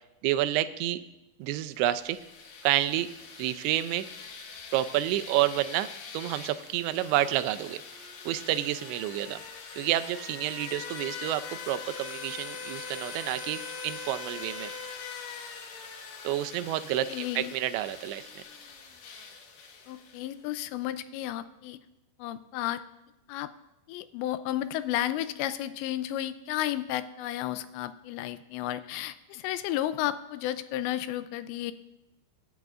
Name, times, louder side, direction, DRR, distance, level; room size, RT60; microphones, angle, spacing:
voice 1, 0.2-1.0 1.4-2.2 2.6-3.1 3.4-4.1 4.7-7.8 8.3-9.4 9.8-14.7 16.2-18.4, right 14 dB, 85° right, 11 dB, 2.9 m, -29 dB
sound 1, 1.8-20.4, left 5 dB, 70° left, 3.2 m, -43 dB
voice 2, 17.1-17.5 19.9-21.8 22.2-22.8 23.3-23.5 23.9-31.7, left 13 dB, 85° left, 13 dB, 2.8 m, -32 dB
24.0 x 10.5 x 2.5 m, 0.96 s
omnidirectional pair, 5.1 m